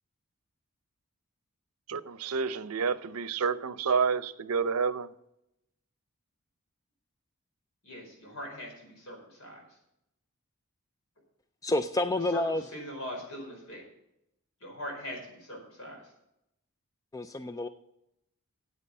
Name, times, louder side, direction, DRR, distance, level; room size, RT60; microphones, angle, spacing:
voice 1, 1.9-5.1, right 5 dB, 85° right, 14 dB, 0.6 m, -29 dB
voice 2, 7.8-9.6 12.3-13.8 14.6-16.1, equal, 65° left, 0 dB, 4.9 m, -41 dB
voice 3, 11.6-12.6 17.1-17.7, left 2 dB, 15° left, 9 dB, 0.4 m, -29 dB
9.7 x 8.2 x 6.4 m, 0.81 s
head